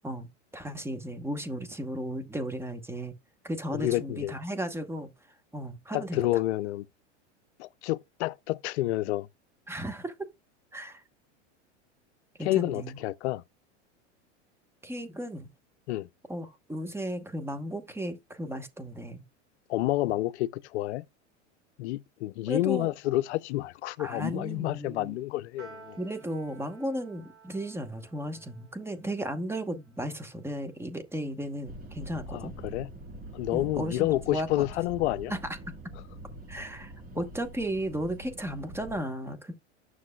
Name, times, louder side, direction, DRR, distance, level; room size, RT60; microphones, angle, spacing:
voice 1, 0.5-3.1 3.4-5.1 5.5-6.2 9.7-10.3 10.7-11.0 12.4-13.0 14.8-15.5 16.3-19.2 22.5-22.9 24.0-25.2 26.0-32.5 33.5-34.7 35.3-35.4 36.5-39.5, right 1 dB, 5° right, 1.0 m, -35 dB
voice 2, 3.7-4.3 5.9-6.9 7.6-9.3 12.4-13.4 15.9-16.1 19.7-21.0 21.8-26.0 32.3-32.9 33.3-35.3, left 16 dB, 65° left, 0.5 m, -29 dB
Piano, 25.6-32.1, right 3 dB, 90° right, 3.2 m, -55 dB
sound 1, 31.7-39.0, right 1 dB, 25° right, 1.9 m, -44 dB
9.4 x 6.4 x 2.2 m
hypercardioid pair, 110°, 36 cm